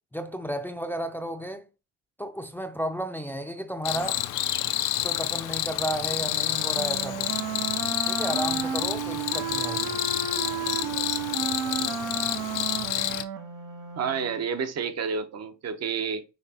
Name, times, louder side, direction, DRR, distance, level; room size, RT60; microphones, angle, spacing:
voice 1, 0.1-1.6 2.2-4.2 5.0-7.4 8.1-10.0, right 1 dB, 5° left, 0.5 m, -33 dB
Cricket, 3.9-13.2, left 13 dB, 85° left, 0.5 m, -29 dB
Wind instrument woodwind instrument, 6.2-14.4, right 7 dB, 90° right, 0.9 m, -33 dB
voice 2, 14.0-16.2, right 6 dB, 60° right, 0.8 m, -30 dB
5.8 x 3.2 x 2.8 m
cardioid pair, 90°, 30 cm